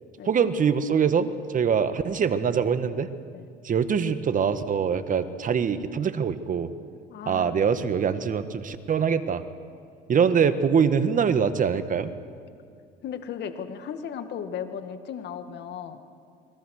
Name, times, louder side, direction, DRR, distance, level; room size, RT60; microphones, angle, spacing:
voice 1, 0.2-3.1 3.6-6.7 7.2-9.4 10.1-12.1, right 6 dB, 40° right, 11 dB, 1.6 m, -23 dB
voice 2, 7.1-7.6 13.0-16.0, left 8 dB, 55° left, 8 dB, 2.1 m, -36 dB
29.0 x 21.5 x 6.6 m, 2.3 s
supercardioid pair, 90°, 21 cm